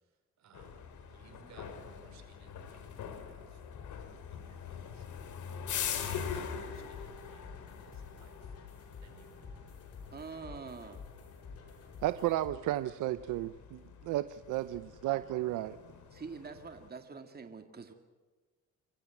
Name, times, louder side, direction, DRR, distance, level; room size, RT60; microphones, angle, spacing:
voice 1, 0.4-3.6 4.3-5.2 6.0-8.5 9.0-9.6, right 5 dB, 65° right, 7 dB, 5.0 m, -60 dB
sound 1, 0.5-16.9, left 8 dB, 75° left, 3.1 m, -44 dB
sound 2, 6.7-12.5, left 5 dB, 55° left, 5.4 m, -50 dB
voice 2, 10.1-11.0 16.1-17.9, right 5 dB, 30° right, 6 dB, 2.1 m, -45 dB
voice 3, 12.0-15.8, right 15 dB, 90° right, 13 dB, 0.7 m, -33 dB
27.5 x 15.0 x 8.4 m, 1.3 s
cardioid pair, 90°, 30 cm